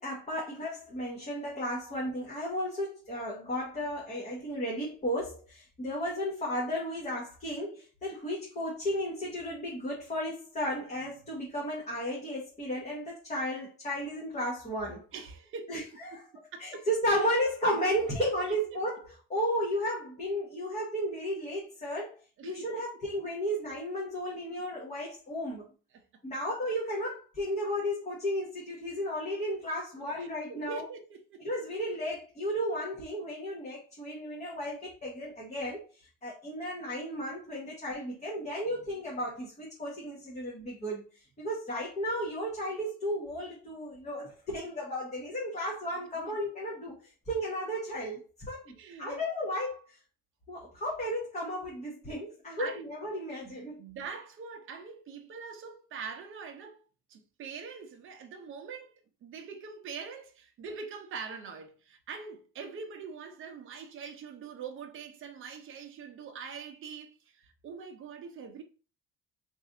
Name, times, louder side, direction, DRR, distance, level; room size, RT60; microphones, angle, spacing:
voice 1, 0.0-15.0 15.7-16.2 16.6-19.0 19.3-22.1 22.4-25.6 26.2-30.8 31.4-35.9 36.2-50.0 50.5-53.8, equal, 25° left, 1.0 m, -34 dB
voice 2, 15.1-15.7 16.1-16.3 16.5-16.8 18.5-18.8 22.4-22.8 25.9-26.0 30.0-31.4 45.9-46.4 48.8-49.2 52.6-52.8 53.4-56.8 57.1-58.9 59.2-68.6, right 5 dB, 45° right, 0.7 m, -43 dB
3.2 x 2.7 x 3.6 m
cardioid pair, 145°, 30 cm